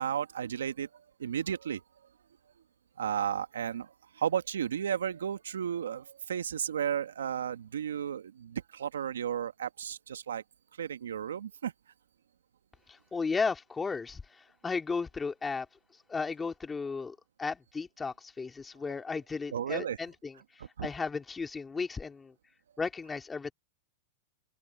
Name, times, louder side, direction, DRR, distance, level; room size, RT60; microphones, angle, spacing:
voice 1, 0.0-1.8 3.0-10.4 10.8-11.7 19.5-20.0 20.6-20.9, right 8 dB, 85° right, 1.7 m, -33 dB
voice 2, 12.9-15.7 16.1-20.4 20.8-22.3 22.8-23.5, left 4 dB, 15° left, 3.2 m, -34 dB
open air
hypercardioid pair, 115°, 0 cm